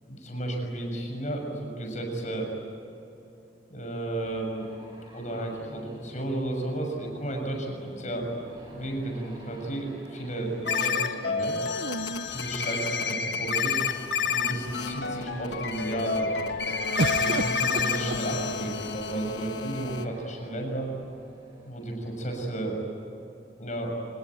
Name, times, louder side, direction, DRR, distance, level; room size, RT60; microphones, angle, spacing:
voice 1, 0.1-2.5 3.7-4.7 5.1-8.3 8.7-11.6 12.2-13.8 14.3-16.3 17.1-20.9 21.6-22.8 23.6-24.0, right 1 dB, 40° left, 2 dB, 6.6 m, -33 dB
sound 1, 4.2-22.6, equal, 20° right, 7.0 m, -50 dB
sound 2, 8.7-9.8 11.7-13.3 14.0-14.1 14.4-15.0 17.0-18.9 19.8-20.5, right 3 dB, 65° right, 0.7 m, -36 dB
sound 3, 10.7-20.1, left 5 dB, 70° left, 1.5 m, -29 dB
27.5 x 19.5 x 9.0 m, 3.0 s
head